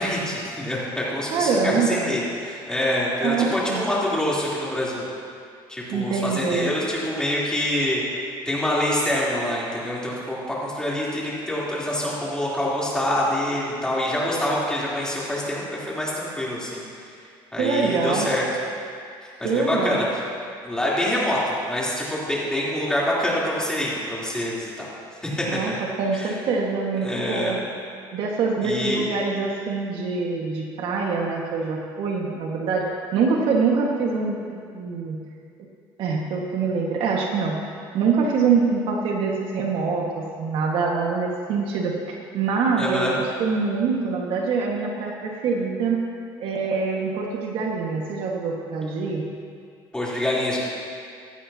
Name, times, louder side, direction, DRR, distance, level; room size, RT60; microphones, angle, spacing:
voice 1, 0.0-5.1 5.7-8.0 8.5-16.8 17.5-18.4 19.4-20.2 20.6-24.9 25.2-25.7 26.1-26.4 27.0-27.6 28.6-29.0 42.8-43.1 49.9-50.6, left 1 dB, 10° left, -7 dB, 3.6 m, -26 dB
voice 2, 1.3-2.1 3.2-3.8 5.9-6.7 17.6-18.3 19.4-20.0 25.5-25.7 26.0-27.6 28.1-35.2 36.0-37.6 37.9-46.0 46.4-49.2, right 4 dB, 70° right, -1 dB, 1.7 m, -24 dB
16.0 x 12.5 x 2.9 m, 2.3 s
cardioid pair, 110°, 9 cm